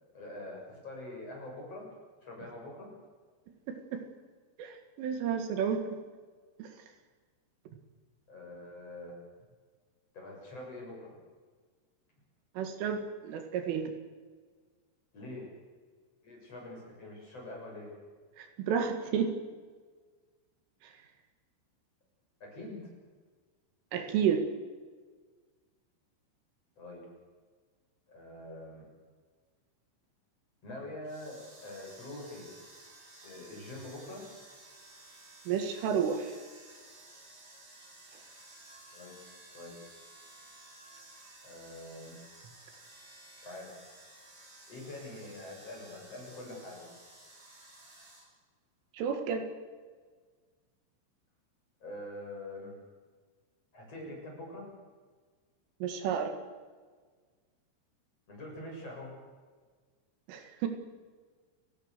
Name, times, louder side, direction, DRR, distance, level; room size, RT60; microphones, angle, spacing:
voice 1, 0.1-1.9 2.2-2.9 8.3-9.2 10.1-11.2 15.1-15.5 16.2-17.9 22.4-22.8 26.8-27.0 28.1-28.8 30.6-32.5 33.2-34.2 38.9-39.1 39.5-40.0 41.4-42.2 43.4-43.7 44.7-46.9 51.8-52.7 53.7-54.7 58.3-59.1, left 1 dB, 30° left, -1 dB, 7.7 m, -44 dB
voice 2, 3.7-4.0 4.6-5.8 6.6-6.7 12.6-13.9 18.4-19.3 23.9-24.5 35.5-36.3 48.9-49.5 55.8-56.4 60.3-60.7, right 7 dB, 75° right, 6 dB, 4.3 m, -31 dB
sound 1, 31.0-48.3, right 2 dB, 35° right, 8.7 m, -54 dB
29.5 x 19.0 x 6.7 m, 1.5 s
omnidirectional pair, 5.9 m